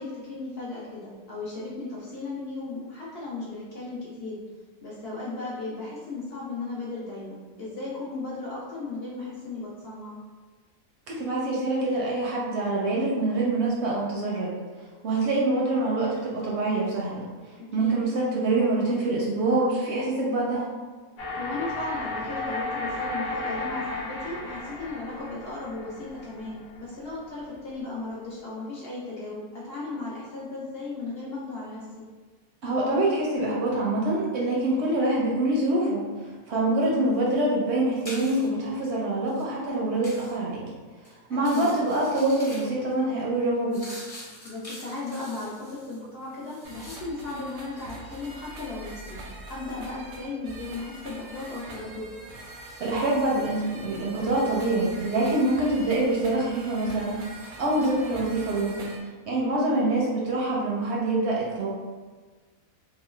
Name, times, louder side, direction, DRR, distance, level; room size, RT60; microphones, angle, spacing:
voice 1, 0.0-4.4 4.8-10.2 15.3-15.6 17.8-18.0 21.4-32.0 41.3-41.8 44.4-49.2 49.5-52.1 59.5-59.7, left 3 dB, 60° left, -7 dB, 0.6 m, -36 dB
voice 2, 11.1-14.5 15.0-17.3 17.7-20.7 32.6-36.0 36.5-40.6 41.3-43.8 52.8-58.9 59.3-61.7, right 2 dB, 65° right, -4 dB, 0.8 m, -25 dB
sound 1, 21.2-27.2, left 2 dB, 80° left, 1.1 m, -34 dB
sound 2, 36.3-36.6 36.8-38.6 39.2-39.5 40.0-40.4 40.9-41.1 41.3-42.9 43.3-47.3 47.6-48.2, left 1 dB, 30° left, 0.8 m, -45 dB
sound 3, 46.6-59.0, right 2 dB, 85° right, 1.1 m, -43 dB
3.0 x 2.2 x 3.1 m, 1.4 s
omnidirectional pair, 1.5 m